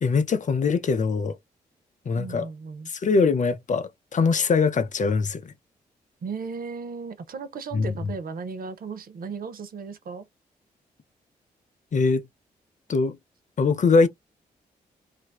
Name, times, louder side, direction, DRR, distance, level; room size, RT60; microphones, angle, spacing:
voice 1, 0.0-1.4 2.1-2.5 2.9-5.4 7.7-7.9 11.9-12.2 12.9-13.2 13.6-14.1, left 4 dB, 45° left, 0.5 m, -22 dB
voice 2, 2.1-2.9 6.2-10.3, right 5 dB, 55° right, 0.6 m, -36 dB
2.5 x 2.1 x 2.2 m
hypercardioid pair, 40°, 18 cm